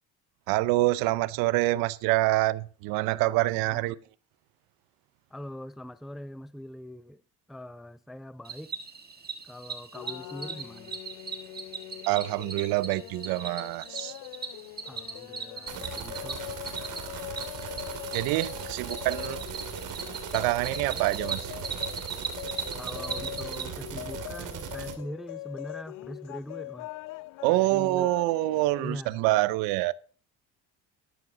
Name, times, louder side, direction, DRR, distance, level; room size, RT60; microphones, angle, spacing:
voice 1, 0.5-4.0 12.1-14.1 18.1-19.4 20.3-21.5 27.4-29.9, right 18 dB, 85° right, 0.7 m, -26 dB
voice 2, 5.3-7.2 7.5-8.7 9.4-11.0 14.8-16.4 22.7-26.9 27.4-28.1 28.8-29.2, equal, ahead, 0.5 m, -42 dB
Cricket, 8.4-23.6, right 5 dB, 25° right, 1.7 m, -39 dB
sound 1, 9.9-28.9, left 20 dB, 65° left, 0.5 m, -42 dB
sound 2, 15.7-24.9, right 8 dB, 60° right, 2.8 m, -39 dB
11.0 x 11.0 x 3.9 m
supercardioid pair, 90°, 35 cm